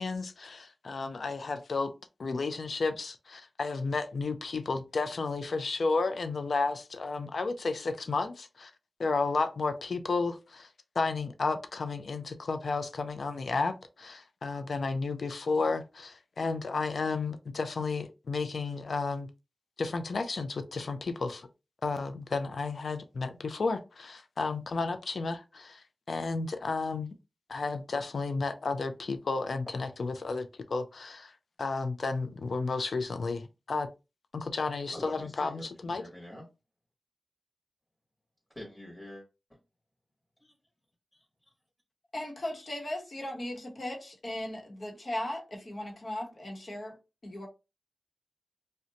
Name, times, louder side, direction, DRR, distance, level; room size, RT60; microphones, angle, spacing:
voice 1, 0.0-1.9 2.2-8.7 9.0-10.7 11.0-19.3 19.8-21.5 21.8-27.1 27.5-31.3 31.6-33.9 34.3-36.0, left 4 dB, 75° left, 0.4 m, -32 dB
voice 2, 34.9-36.5 38.5-39.2 39.5-39.6 40.4-40.5 41.1-41.2, left 1 dB, ahead, 1.0 m, -46 dB
voice 3, 42.1-47.0 47.2-47.5, left 1 dB, 60° left, 0.9 m, -37 dB
2.5 x 2.1 x 2.7 m
cardioid pair, 45°, 0 cm